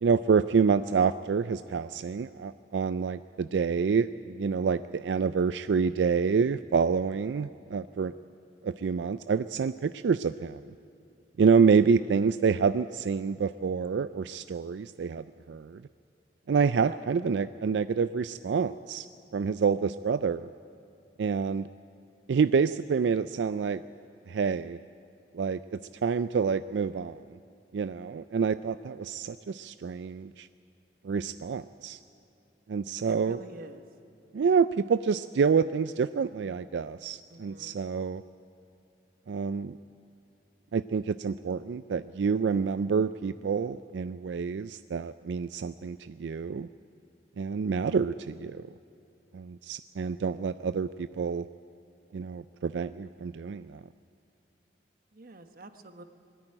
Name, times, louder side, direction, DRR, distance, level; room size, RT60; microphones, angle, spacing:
voice 1, 0.0-8.1 8.6-10.6 11.4-15.8 16.5-19.1 19.3-20.5 21.2-21.7 22.3-23.8 24.3-24.8 25.3-27.2 27.7-30.5 31.0-32.0 32.7-33.4 34.3-38.2 39.3-39.8 40.7-46.7 47.4-48.6 49.3-51.5 52.1-53.8, right 5 dB, 85° right, 13 dB, 0.4 m, -27 dB
voice 2, 33.1-33.8 37.3-37.8 55.1-56.0, right 2 dB, 55° right, 7 dB, 1.2 m, -46 dB
20.5 x 13.5 x 9.9 m, 2.5 s
head